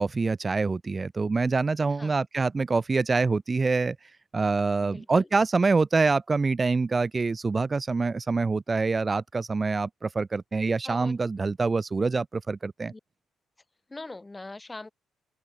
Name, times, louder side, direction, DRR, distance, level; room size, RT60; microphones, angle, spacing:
voice 1, 0.0-12.9, right 4 dB, 30° right, 0.3 m, -25 dB
voice 2, 4.8-5.3 10.8-11.2 12.9-13.0 13.9-14.9, left 2 dB, 20° left, 2.7 m, -41 dB
open air
cardioid pair, 90°, 0 cm